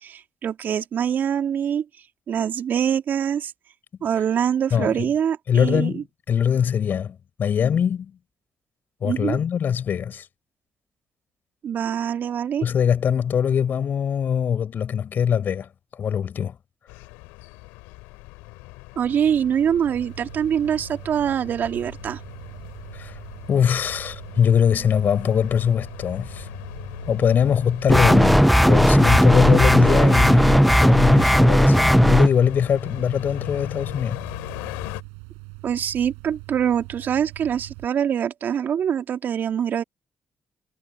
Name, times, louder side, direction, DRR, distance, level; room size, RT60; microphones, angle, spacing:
voice 1, 0.0-1.9 2.3-3.5 4.0-6.0 9.0-9.4 11.6-12.7 19.0-22.2 35.6-39.8, right 8 dB, 60° right, 2.5 m, -24 dB
voice 2, 4.7-5.1 5.5-8.2 9.0-10.3 12.6-16.6 22.9-23.2 23.5-26.5 27.1-34.2, left 8 dB, 60° left, 6.8 m, -22 dB
sound 1, 16.9-35.0, left 25 dB, 80° left, 3.1 m, -39 dB
sound 2, 19.8-37.9, right 36 dB, 80° right, 8.0 m, -42 dB
sound 3, 27.9-32.3, equal, ahead, 0.4 m, -15 dB
hypercardioid pair, 40°, 4 cm